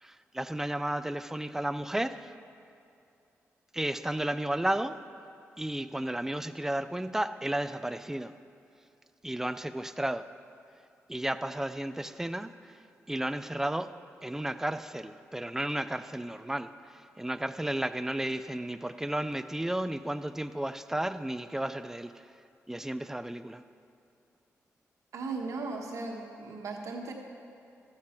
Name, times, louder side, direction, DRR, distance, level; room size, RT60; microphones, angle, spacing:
voice 1, 0.0-2.3 3.7-4.9 5.6-8.3 9.2-10.2 11.1-12.7 13.1-13.9 14.2-22.1 22.7-23.6, right 1 dB, 10° right, 12 dB, 0.4 m, -33 dB
voice 2, 25.1-27.1, right 3 dB, 75° right, 1 dB, 1.3 m, -37 dB
13.0 x 7.7 x 4.4 m, 2.6 s
cardioid pair, 55°, 5 cm